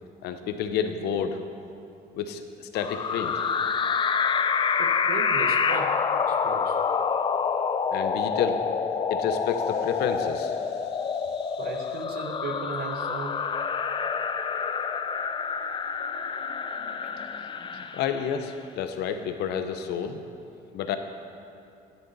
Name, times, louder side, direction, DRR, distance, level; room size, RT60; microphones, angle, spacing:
voice 1, 0.2-1.4 2.1-3.4 7.9-8.6 9.1-10.6 17.9-20.2 20.7-21.0, left 7 dB, 80° left, 7 dB, 0.8 m, -29 dB
sound 1, 2.7-18.4, left 6 dB, 30° left, 0.4 m, -27 dB
voice 2, 4.8-6.8 11.5-13.4 17.4-17.8, right 4 dB, 65° right, 3 dB, 0.9 m, -37 dB
11.0 x 10.0 x 4.0 m, 2.6 s
cardioid pair, 110°, 17 cm